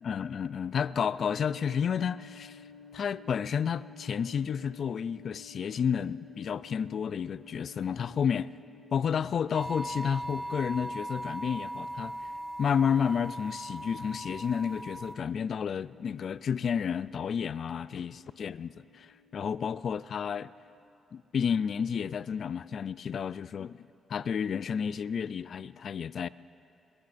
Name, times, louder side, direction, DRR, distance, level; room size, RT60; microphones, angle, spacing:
voice 1, 0.0-2.6 2.9-8.5 8.9-12.2 12.6-20.5 21.1-23.8 24.1-26.3, left 7 dB, 50° left, 0.3 m, -31 dB
sound 1, 1.2-20.8, left 5 dB, 90° left, 1.7 m, -55 dB
sound 2, 9.5-15.2, right 1 dB, 5° right, 0.5 m, -39 dB
22.5 x 21.5 x 2.6 m
cardioid pair, 130°, 0 cm